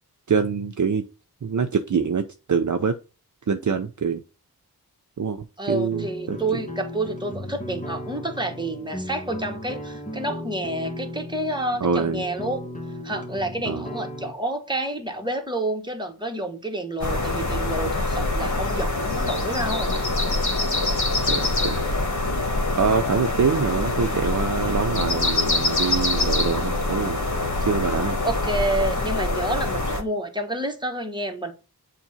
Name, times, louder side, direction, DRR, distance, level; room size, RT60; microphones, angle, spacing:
voice 1, 0.3-1.1 1.4-3.0 3.5-4.2 5.2-6.4 11.8-12.2 13.6-13.8 21.3-21.8 22.8-27.2 27.6-28.2, right 6 dB, 50° right, 0.6 m, -25 dB
voice 2, 5.6-12.6 13.0-19.9 28.2-31.5, right 1 dB, 10° right, 1.4 m, -29 dB
sound 1, 5.9-14.3, left 1 dB, 20° left, 1.4 m, -35 dB
sound 2, 17.0-30.0, left 2 dB, 50° left, 1.4 m, -24 dB
7.1 x 2.6 x 5.6 m
cardioid pair, 40°, 38 cm